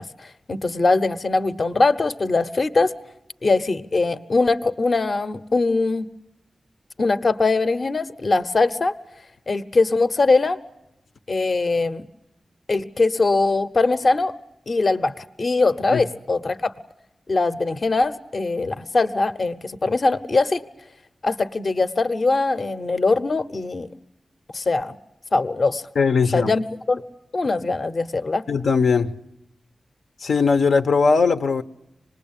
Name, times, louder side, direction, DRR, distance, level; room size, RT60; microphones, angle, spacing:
voice 1, 0.0-2.9 3.4-6.0 7.0-8.9 9.5-10.6 11.3-12.1 12.7-14.3 14.7-16.7 17.3-20.6 21.2-23.9 24.5-25.0 25.3-25.8 26.3-27.0 27.3-28.4, left 3 dB, 45° left, 0.9 m, -21 dB
voice 2, 25.9-26.5 28.5-29.1 30.2-31.6, left 5 dB, 85° left, 1.0 m, -19 dB
26.5 x 20.0 x 8.9 m
wide cardioid pair, 145°, 0 cm